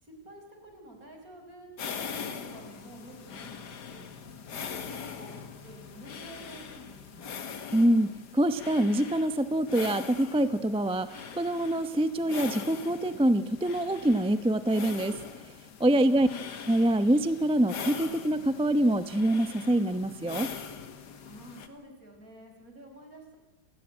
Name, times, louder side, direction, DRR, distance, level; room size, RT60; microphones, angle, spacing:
voice 1, 0.0-4.1 4.5-7.4 15.9-16.5 21.3-23.4, right 1 dB, 50° right, 3 dB, 5.3 m, -49 dB
sound 1, 1.8-21.7, left 6 dB, 70° left, 2.0 m, -42 dB
voice 2, 7.7-15.1 15.8-16.3 16.7-20.5, right 1 dB, 10° right, 11 dB, 0.3 m, -25 dB
28.5 x 17.0 x 9.0 m, 1.1 s
omnidirectional pair, 1.9 m